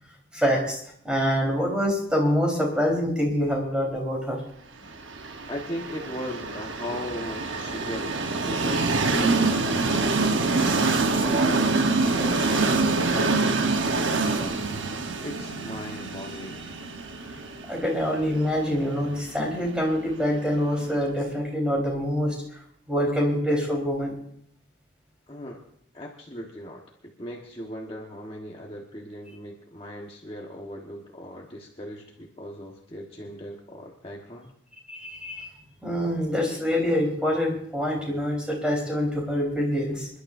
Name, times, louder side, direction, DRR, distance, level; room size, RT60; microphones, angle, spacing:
voice 1, 0.3-4.4 4.8-4.9 17.2-24.2 34.9-35.5 35.8-40.1, equal, 5° right, -2 dB, 4.0 m, -26 dB
Train, 5.1-20.9, right 3 dB, 75° right, 1.1 m, -26 dB
voice 2, 5.5-10.2 11.1-14.7 15.2-16.6 25.3-25.6 25.9-34.5, equal, 30° left, -1 dB, 1.3 m, -38 dB
27.5 x 11.5 x 2.6 m, 0.66 s
head